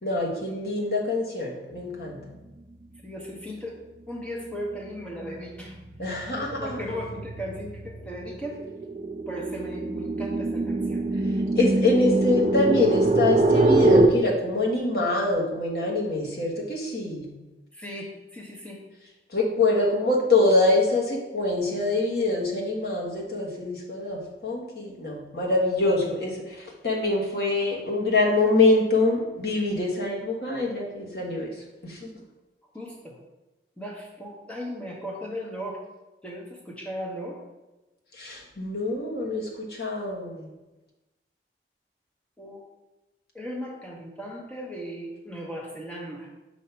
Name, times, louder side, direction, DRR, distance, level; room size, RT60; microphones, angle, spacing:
voice 1, 0.0-2.2 6.0-6.8 11.6-17.3 19.3-31.5 31.8-32.1 38.1-40.5, left 2 dB, 65° left, -2 dB, 1.3 m, -25 dB
voice 2, 3.0-3.8 4.1-5.7 6.3-8.6 9.3-11.0 17.7-18.8 32.7-33.2 33.8-35.8 36.2-37.4 42.4-42.6 43.3-46.3, equal, 5° left, -2 dB, 0.9 m, -37 dB
sound 1, 4.4-4.7 5.1-14.1, right 2 dB, 35° right, 0.4 m, -24 dB
6.3 x 2.8 x 5.6 m, 1.1 s
head